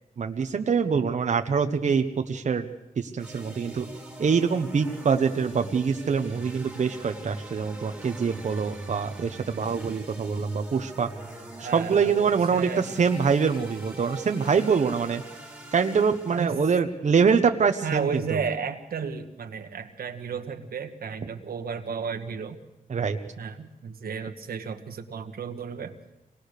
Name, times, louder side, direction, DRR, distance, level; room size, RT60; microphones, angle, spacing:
voice 1, 0.2-2.7 3.0-3.9 4.2-11.1 11.6-15.2 15.7-18.4 22.9-23.2, right 6 dB, 50° right, 5 dB, 1.0 m, -24 dB
sound 1, 3.2-16.7, right 1 dB, 5° right, 2.4 m, -43 dB
voice 2, 11.6-12.9 16.3-16.6 17.8-22.6 23.4-25.9, right 6 dB, 80° right, 5 dB, 1.4 m, -33 dB
24.5 x 19.0 x 6.7 m, 0.99 s
wide cardioid pair, 135°, 15 cm